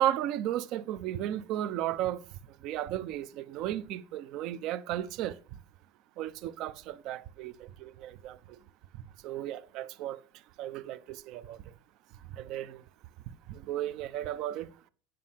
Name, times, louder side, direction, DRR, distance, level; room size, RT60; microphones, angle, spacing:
voice 1, 0.0-2.2 2.6-5.3 6.2-7.5 7.8-8.4 9.2-10.2 10.6-11.6 12.3-12.8 13.5-14.7, right 12 dB, 50° right, 0.7 m, -34 dB
9.5 x 6.3 x 5.8 m
supercardioid pair, 140°, 0 cm